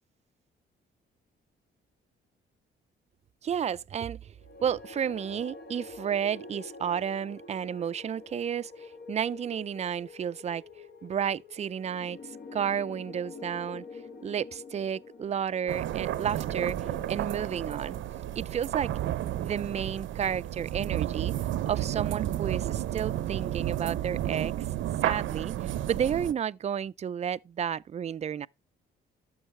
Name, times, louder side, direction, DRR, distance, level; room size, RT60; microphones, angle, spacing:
voice 1, 3.4-4.3 4.6-10.6 11.0-12.2 12.5-13.9 14.2-16.8 17.1-18.0 18.3-18.9 19.4-21.3 21.7-24.5 25.0-28.5, right 8 dB, 35° right, 0.4 m, -32 dB
sound 1, 4.4-20.7, left 3 dB, 55° left, 1.3 m, -47 dB
sound 2, 15.7-26.3, right 12 dB, 75° right, 0.6 m, -32 dB
11.0 x 7.3 x 3.2 m
cardioid pair, 90°, 20 cm